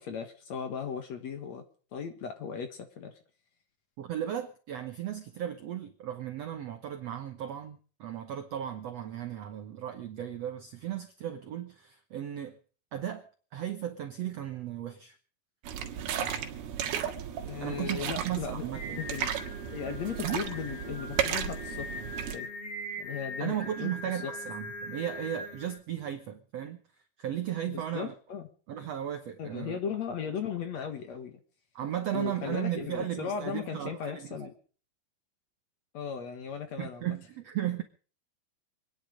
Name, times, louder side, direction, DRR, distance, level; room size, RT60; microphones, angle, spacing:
voice 1, 0.0-1.6 1.9-3.1 17.4-19.3 19.7-21.9 22.3-22.5 23.0-23.5 23.8-24.3 27.7-28.5 29.4-31.4 32.1-34.5 35.9-37.2, left 7 dB, 55° left, 2.3 m, -37 dB
voice 2, 4.0-12.5 12.9-13.2 13.5-15.2 17.6-19.0 23.4-26.8 27.2-28.1 28.7-29.8 31.7-34.5 36.8-37.8, right 11 dB, 70° right, 1.5 m, -35 dB
sound 1, 15.6-22.4, right 9 dB, 90° right, 3.6 m, -34 dB
Singing, 18.7-25.8, left 1 dB, 20° left, 1.5 m, -41 dB
26.5 x 10.0 x 5.1 m
omnidirectional pair, 4.4 m